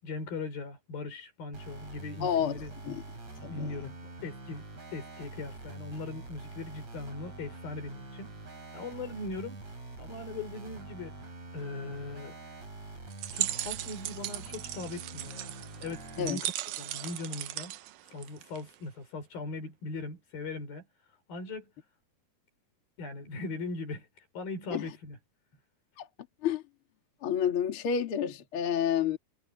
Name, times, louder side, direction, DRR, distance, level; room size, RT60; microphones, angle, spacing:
voice 1, 0.0-2.7 3.5-3.9 4.2-4.6 4.9-8.4 8.7-9.6 10.0-11.1 11.5-12.4 13.3-15.5 15.8-17.8 18.1-20.9 21.3-21.7 23.0-24.1 24.3-25.2, left 3 dB, 80° left, 7.2 m, -39 dB
sound 1, 1.5-16.4, right 2 dB, 50° right, 9.1 m, -45 dB
voice 2, 2.2-2.6 2.9-3.0 3.4-3.9 16.2-16.4 24.7-24.9 26.0-26.1 26.4-26.6 27.2-29.2, left 8 dB, 40° left, 2.6 m, -29 dB
sound 2, 13.1-18.7, right 14 dB, 85° right, 2.8 m, -37 dB
omnidirectional pair, 4.1 m